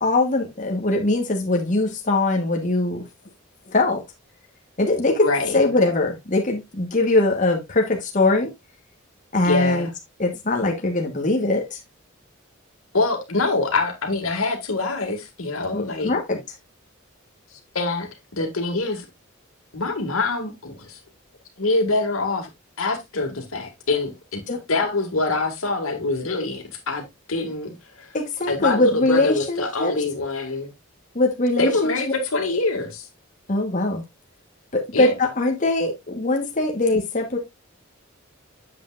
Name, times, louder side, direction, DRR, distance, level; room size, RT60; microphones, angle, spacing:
voice 1, 0.0-3.0 3.7-4.0 4.8-5.3 5.5-8.5 9.3-9.9 10.2-11.8 15.7-16.4 24.5-24.6 28.1-29.9 31.1-31.9 33.5-34.0 34.7-37.4, left 2 dB, 40° left, 1.2 m, -21 dB
voice 2, 5.2-5.6 9.4-9.9 12.9-16.2 17.7-19.1 19.7-21.0 21.6-22.5 22.8-24.4 24.7-28.1 28.5-30.7 31.6-33.1 34.9-35.1, left 3 dB, 85° left, 2.0 m, -25 dB
8.3 x 7.7 x 2.4 m
head